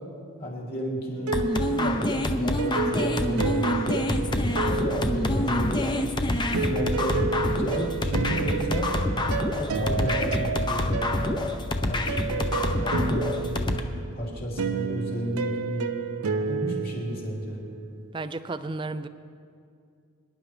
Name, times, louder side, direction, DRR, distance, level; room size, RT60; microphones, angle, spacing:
voice 1, 0.4-3.8 4.4-6.0 6.6-8.9 9.5-11.4 11.8-13.6 14.1-15.9 16.4-17.6, equal, 45° left, -3 dB, 3.0 m, -33 dB
sound 1, 1.2-5.9 6.5-17.8, right 5 dB, 90° right, 0.7 m, -31 dB
sound 2, 1.3-13.8, left 1 dB, 20° left, 0.6 m, -26 dB
voice 2, 18.1-19.1, right 3 dB, 20° right, 12 dB, 0.4 m, -32 dB
24.5 x 11.0 x 3.3 m, 2.4 s
head